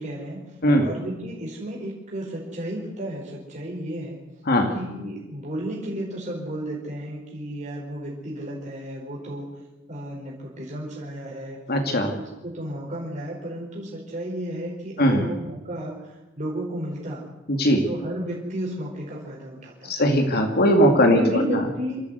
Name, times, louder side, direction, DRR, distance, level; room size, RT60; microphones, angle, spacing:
voice 1, 0.0-4.2 4.7-9.5 9.9-11.6 12.1-17.3 17.8-19.9 21.0-22.0, right 1 dB, 35° right, -3 dB, 4.8 m, -32 dB
voice 2, 11.7-12.1 15.0-15.3 17.5-17.8 19.8-21.6, equal, 50° left, 4 dB, 2.4 m, -19 dB
26.0 x 13.5 x 8.1 m, 1.0 s
head